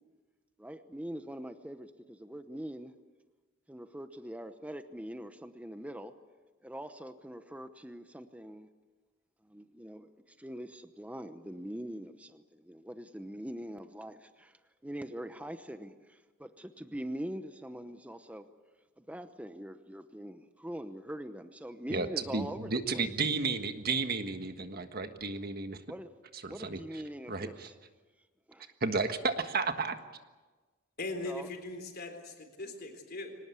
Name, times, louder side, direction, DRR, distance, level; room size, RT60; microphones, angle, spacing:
voice 1, 0.6-2.9 3.7-6.1 6.6-8.7 9.5-10.1 10.4-14.5 14.8-18.4 19.0-23.1 25.9-26.1 26.5-27.7 28.5-28.7 31.3-31.5, equal, 5° right, 9 dB, 0.9 m, -43 dB
voice 2, 21.9-25.8 26.4-26.8 27.3-27.7 28.8-30.0, right 4 dB, 50° right, 8 dB, 1.5 m, -32 dB
voice 3, 31.0-33.4, left 2 dB, 50° left, 4 dB, 4.1 m, -40 dB
25.0 x 18.5 x 8.4 m, 1.3 s
head